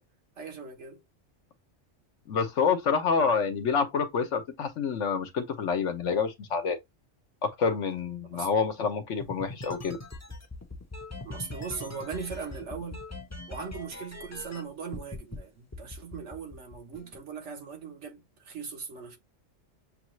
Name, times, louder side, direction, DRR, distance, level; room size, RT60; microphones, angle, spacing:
voice 1, 0.4-1.0 8.3-8.5 11.2-13.0 13.5-19.2, right 5 dB, 65° right, 1.4 m, -39 dB
voice 2, 2.3-6.8 7.4-10.0, left 5 dB, 70° left, 1.2 m, -27 dB
sound 1, 9.2-14.6 14.9-15.4 15.7-17.2, left 2 dB, 15° left, 0.6 m, -41 dB
6.7 x 2.4 x 3.0 m
omnidirectional pair, 1.3 m